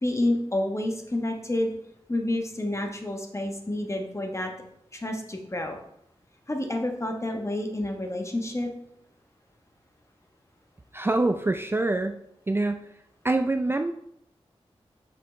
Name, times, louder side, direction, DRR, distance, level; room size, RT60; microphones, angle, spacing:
voice 1, 0.0-1.7 2.1-4.5 4.9-5.8 6.5-8.7, left 1 dB, 25° left, 4 dB, 1.1 m, -29 dB
voice 2, 10.9-12.2 12.5-12.9 13.2-13.9, right 2 dB, 20° right, 7 dB, 0.4 m, -25 dB
6.1 x 5.2 x 3.2 m, 0.77 s
cardioid pair, 45°, 11 cm